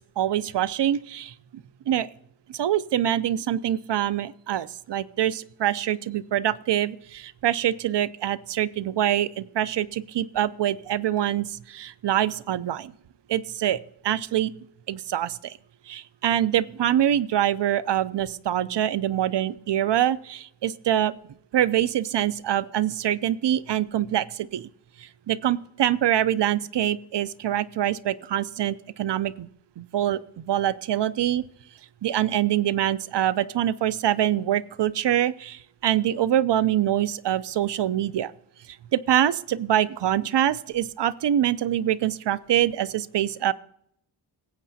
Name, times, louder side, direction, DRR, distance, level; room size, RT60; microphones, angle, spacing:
voice 1, 0.2-1.3 1.9-2.1 2.5-12.9 13.3-14.5 14.9-15.5 15.9-21.1 21.5-24.7 25.3-29.5 29.8-31.4 32.0-38.3 38.9-43.5, right 11 dB, 80° right, 16 dB, 0.6 m, -25 dB
18.5 x 8.3 x 2.7 m, 0.72 s
wide cardioid pair, 135°, 41 cm